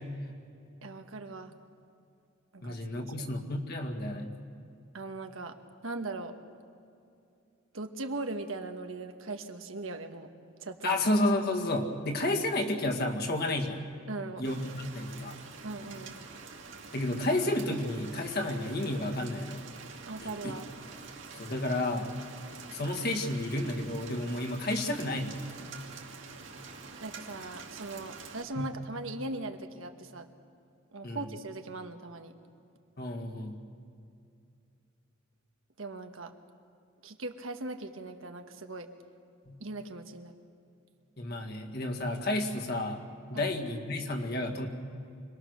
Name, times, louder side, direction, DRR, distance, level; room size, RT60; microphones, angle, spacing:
voice 1, 0.8-1.5 2.5-3.3 4.9-5.6 5.8-6.3 7.7-10.3 10.6-10.9 14.1-14.4 15.6-16.1 20.0-20.7 27.0-30.3 30.9-32.3 35.8-36.3 37.0-38.9 39.6-40.3 43.3-43.5, right 2 dB, 90° right, 6 dB, 1.4 m, -39 dB
voice 2, 2.6-4.3 10.8-13.8 14.4-15.3 16.9-19.6 20.2-20.5 21.3-22.1 22.7-25.3 28.6-28.7 31.0-31.2 33.0-33.6 39.5-39.6 41.2-43.0 43.3-44.7, left 1 dB, 55° left, 3 dB, 1.9 m, -31 dB
Rain, 14.4-28.4, right 4 dB, 70° right, 2.4 m, -47 dB
26.0 x 19.5 x 6.6 m, 2.6 s
head